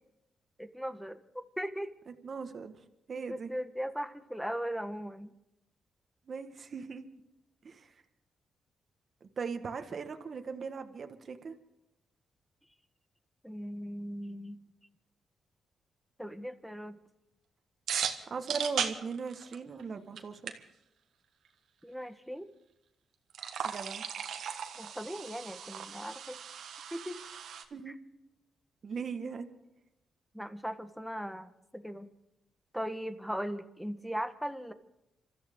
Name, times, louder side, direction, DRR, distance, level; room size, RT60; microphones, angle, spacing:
voice 1, 0.6-1.2 1.6-1.9 3.3-5.3 13.4-14.6 16.2-17.0 21.8-22.5 24.8-26.4 26.9-27.2 27.9-28.0 30.3-32.1 32.7-34.7, equal, ahead, 9 dB, 1.4 m, -38 dB
voice 2, 2.2-2.7 3.1-3.5 6.3-7.1 7.6-7.9 9.2-11.5 18.3-20.7 23.6-24.0 27.7-28.0 28.8-29.5, right 5 dB, 50° right, 7 dB, 1.6 m, -39 dB
sound 1, 17.9-19.8 20.2-20.3 20.5-20.6 23.3-27.6, right 8 dB, 75° right, 1.5 m, -37 dB
27.0 x 14.0 x 3.8 m, 0.86 s
cardioid pair, 80°, 0 cm